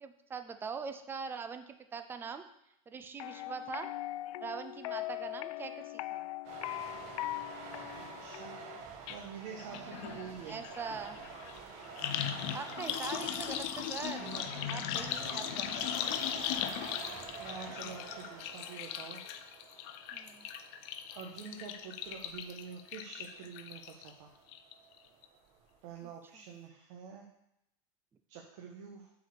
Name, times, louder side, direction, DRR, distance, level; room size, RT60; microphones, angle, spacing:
voice 1, 0.0-2.4 2.9-3.9 4.4-6.3 9.7-11.2 12.5-14.3 14.7-15.8 20.1-20.5, right 5 dB, 10° right, 9 dB, 0.5 m, -42 dB
sound 1, 3.2-8.8, left 16 dB, 85° left, 0.4 m, -40 dB
sound 2, 6.4-26.1, right 5 dB, 40° right, 1.3 m, -48 dB
voice 2, 7.9-8.6 9.1-10.6 14.2-14.5 16.3-16.7 17.4-19.2 21.1-24.3 25.8-27.3 28.3-29.1, right 6 dB, 60° right, -1 dB, 1.5 m, -47 dB
sound 3, 9.1-9.2 9.5-24.1 24.5-25.0 25.2-25.3, left 10 dB, 50° left, 0.7 m, -39 dB
8.1 x 4.8 x 6.9 m, 0.79 s
supercardioid pair, 160°, 18 cm